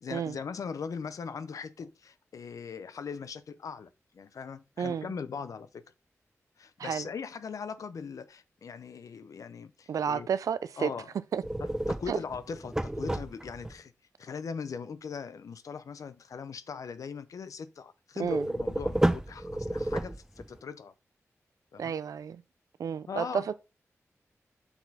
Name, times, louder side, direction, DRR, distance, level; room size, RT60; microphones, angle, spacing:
voice 1, 0.0-5.8 6.6-10.3 10.8-11.1 11.6-13.9 14.2-20.9 21.7-21.9 23.1-23.5, left 6 dB, 80° left, 0.6 m, -40 dB
voice 2, 9.9-10.9 11.3-11.4 12.1-12.2 18.2-18.4 21.8-22.4 22.8-23.5, right 7 dB, 90° right, 0.4 m, -31 dB
sound 1, 11.4-13.7 18.3-20.6, right 1 dB, 10° right, 0.5 m, -30 dB
7.0 x 4.1 x 4.1 m
cardioid pair, 55°, 6 cm